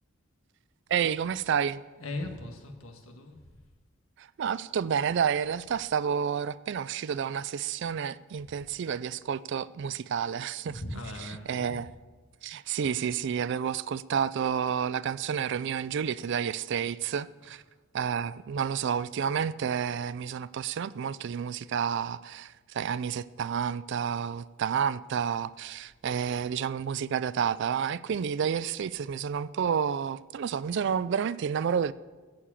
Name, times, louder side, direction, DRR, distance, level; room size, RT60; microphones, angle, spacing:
voice 1, 0.9-1.8 4.2-10.7 11.5-11.9 12.4-17.6 17.9-31.9, right 7 dB, 60° right, 0.4 m, -30 dB
voice 2, 2.0-3.7 10.7-11.9 17.4-17.6, left 2 dB, 80° left, 1.6 m, -39 dB
14.5 x 4.9 x 8.3 m
head